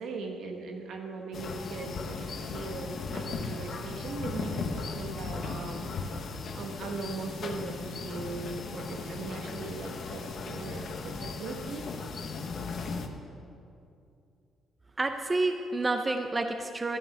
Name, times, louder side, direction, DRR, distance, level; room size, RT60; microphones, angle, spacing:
voice 1, 0.0-5.9 6.5-11.8, right 3 dB, 75° right, 3 dB, 1.4 m, -39 dB
sound 1, 1.3-13.1, left 4 dB, 55° left, 0.9 m, -37 dB
voice 2, 15.0-17.0, right 2 dB, 25° right, 6 dB, 0.6 m, -29 dB
12.5 x 7.4 x 6.1 m, 2.6 s
cardioid pair, 90°, 0 cm